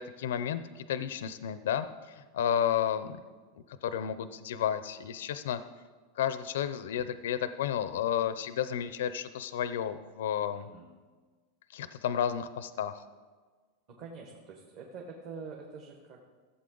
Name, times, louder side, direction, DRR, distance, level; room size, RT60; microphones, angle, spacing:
voice 1, 0.0-3.2 3.5-5.6 6.2-10.7 11.7-13.0, left 9 dB, 90° left, 12 dB, 0.5 m, -32 dB
voice 2, 10.5-10.9 13.9-16.3, right 5 dB, 35° right, -1 dB, 1.3 m, -46 dB
15.0 x 8.0 x 3.9 m, 1.4 s
supercardioid pair, 175°, 0 cm